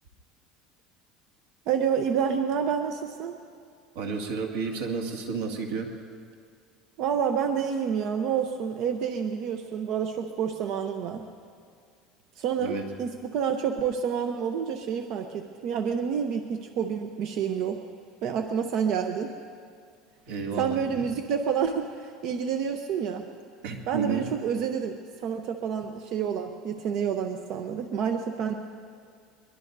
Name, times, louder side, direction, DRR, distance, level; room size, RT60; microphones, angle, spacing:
voice 1, 1.7-3.4 7.0-11.3 12.4-17.8 18.2-19.3 20.6-23.2 23.9-28.5, right 7 dB, 55° right, 5 dB, 0.8 m, -28 dB
voice 2, 3.9-5.9 12.6-12.9 20.3-21.1 23.6-24.3, right 5 dB, 90° right, 1 dB, 2.2 m, -32 dB
23.0 x 22.0 x 2.7 m, 2.2 s
cardioid pair, 145°, 0 cm